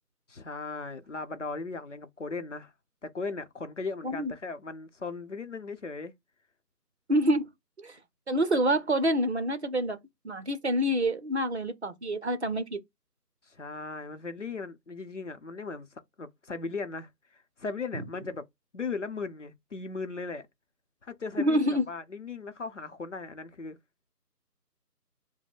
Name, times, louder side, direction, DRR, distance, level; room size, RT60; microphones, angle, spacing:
voice 1, 0.3-2.7 3.0-6.1 13.5-15.9 16.2-18.4 18.7-20.5 21.0-23.8, left 4 dB, 50° left, 0.7 m, -37 dB
voice 2, 7.1-7.5 7.8-8.0 8.3-10.0 10.2-12.8 17.9-18.0 21.4-21.9, equal, 45° right, 0.7 m, -27 dB
4.8 x 2.1 x 3.5 m
figure-of-eight pair, 165°, 49 cm